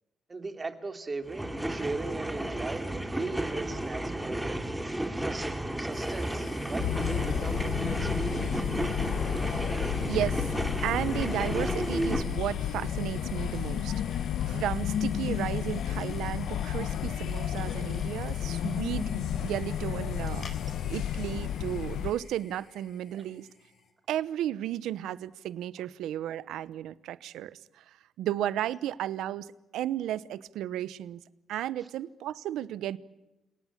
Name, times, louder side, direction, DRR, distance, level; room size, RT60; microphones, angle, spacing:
voice 1, 0.3-4.7 5.2-5.5 5.8-8.5, right 3 dB, 30° right, 3.0 m, -38 dB
sound 1, 1.2-12.2, right 1 dB, 10° right, 2.8 m, -33 dB
sound 2, 5.9-23.9, left 4 dB, 50° left, 4.4 m, -47 dB
sound 3, 6.8-22.1, left 10 dB, 80° left, 1.1 m, -32 dB
voice 2, 10.1-10.4 10.8-20.5 20.8-23.5 24.1-31.2 31.5-33.0, right 12 dB, 85° right, 0.9 m, -34 dB
30.0 x 19.0 x 8.7 m
cardioid pair, 90°, 0 cm